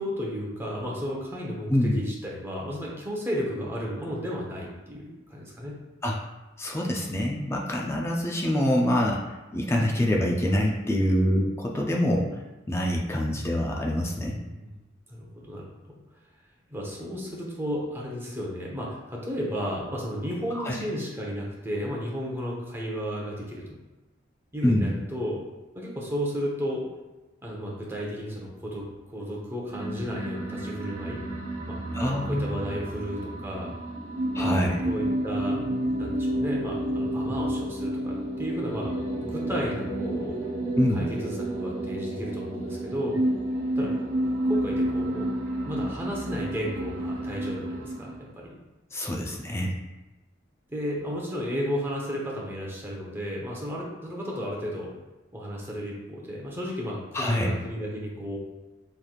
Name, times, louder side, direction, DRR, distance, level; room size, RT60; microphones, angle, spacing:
voice 1, 0.0-5.8 14.1-14.7 15.1-16.0 16.7-23.8 24.5-25.4 25.7-26.8 27.4-31.2 31.7-33.8 34.4-35.6 36.0-38.9 39.2-40.3 40.9-43.2 43.8-43.9 44.5-45.3 45.7-48.6 50.7-54.9 55.3-58.4, equal, 10° right, -3 dB, 0.8 m, -33 dB
voice 2, 6.6-12.3 12.7-14.4 20.6-20.7 24.6-24.9 31.9-32.5 34.3-34.7 40.8-41.0 48.9-49.7 57.1-57.5, equal, 15° left, -1 dB, 0.4 m, -25 dB
sound 1, 29.7-48.3, right 1 dB, 90° right, 0.8 m, -30 dB
5.7 x 3.3 x 2.3 m, 1.1 s
head